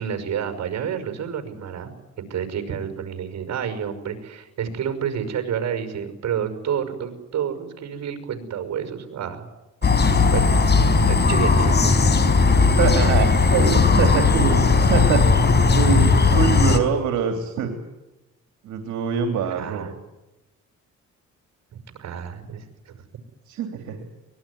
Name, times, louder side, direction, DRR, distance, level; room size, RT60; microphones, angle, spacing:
voice 1, 0.0-1.9 2.2-9.5 10.0-10.6 11.1-11.9 19.5-19.9 21.7-23.0, right 8 dB, 60° right, 8 dB, 5.6 m, -29 dB
sound 1, 9.8-16.8, left 4 dB, 35° left, 4.2 m, -17 dB
voice 2, 12.8-15.2 15.7-17.7 18.6-19.9 23.5-23.9, right 7 dB, 80° right, 4 dB, 3.2 m, -24 dB
23.5 x 20.5 x 9.8 m, 1.0 s
cardioid pair, 90°, 30 cm